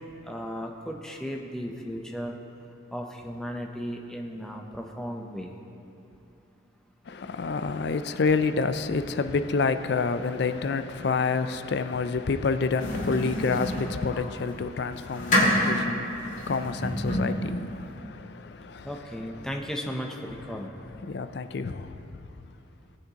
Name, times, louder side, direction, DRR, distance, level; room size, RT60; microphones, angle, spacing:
voice 1, 0.0-2.4 2.9-5.6 18.8-20.7, equal, 5° left, 0.7 m, -35 dB
voice 2, 7.1-18.9 21.0-22.0, left 4 dB, 55° left, 0.4 m, -28 dB
sound 1, 12.8-14.2 14.8-17.5, left 1 dB, 40° left, 2.1 m, -27 dB
18.5 x 8.3 x 2.9 m
head